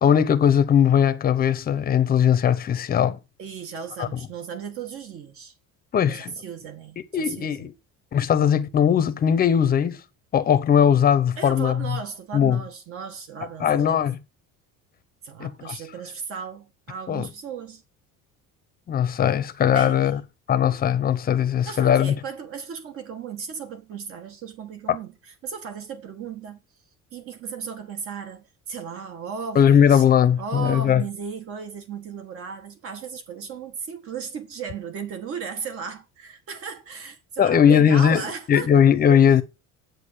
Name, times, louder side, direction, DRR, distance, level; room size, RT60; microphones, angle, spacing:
voice 1, 0.0-3.2 4.0-4.2 5.9-6.3 7.1-7.7 8.1-10.0 10.3-12.0 12.3-12.6 13.6-14.2 15.4-15.8 17.1-17.3 18.9-20.2 20.5-22.1 24.9-25.0 29.5-31.0 37.4-38.2 38.5-39.4, left 8 dB, 30° left, 0.9 m, -19 dB
voice 2, 3.4-5.5 6.1-7.7 11.4-14.1 15.2-17.8 19.7-20.1 21.7-25.1 25.4-26.6 27.1-30.0 30.4-38.8, right 6 dB, 45° right, 1.8 m, -35 dB
8.3 x 6.5 x 6.7 m
cardioid pair, 175°, 32 cm